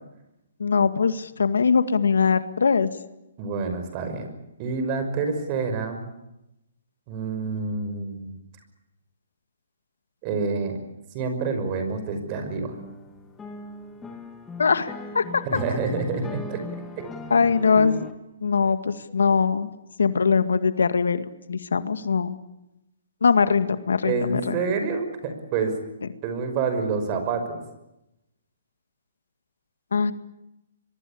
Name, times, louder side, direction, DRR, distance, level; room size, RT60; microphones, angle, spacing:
voice 1, 0.6-2.9 14.6-15.4 17.3-18.1 18.4-19.7 20.0-22.4 23.2-24.6 29.9-30.1, left 5 dB, 85° left, 11 dB, 2.0 m, -22 dB
voice 2, 3.4-4.3 4.6-6.1 7.1-8.3 10.2-10.8 11.1-12.8 15.5-16.6 24.0-25.7 26.2-27.6, right 4 dB, 30° right, 7 dB, 5.7 m, -27 dB
sound 1, 12.7-18.1, left 3 dB, 10° left, 2.3 m, -38 dB
24.5 x 22.5 x 8.8 m, 0.89 s
hypercardioid pair, 155°, 0 cm